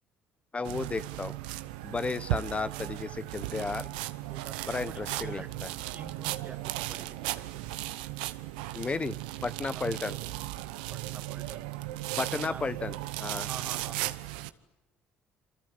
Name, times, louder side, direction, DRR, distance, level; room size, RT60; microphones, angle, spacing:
voice 1, 0.5-1.4 1.8-3.9 4.7-5.7 8.7-9.2 9.4-10.1 12.2-13.5, left 4 dB, 30° left, 14 dB, 1.0 m, -33 dB
sound 1, 0.6-14.5, right 16 dB, 90° right, 1.0 m, -36 dB
voice 2, 4.3-5.6 5.9-7.7 9.7-9.9 10.9-11.7 12.3-13.0 13.5-14.2, right 5 dB, 35° right, 11 dB, 1.8 m, -47 dB
28.0 x 25.5 x 8.3 m, 1.1 s
supercardioid pair, 70°, 5 cm